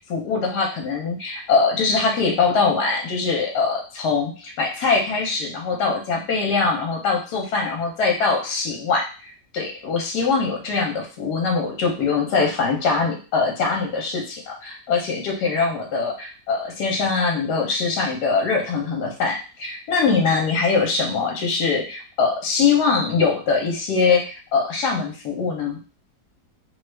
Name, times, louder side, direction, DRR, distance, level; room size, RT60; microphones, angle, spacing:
voice 1, 0.0-25.8, left 4 dB, 75° left, 0 dB, 1.3 m, -22 dB
3.0 x 2.3 x 3.2 m, 0.35 s
omnidirectional pair, 1.8 m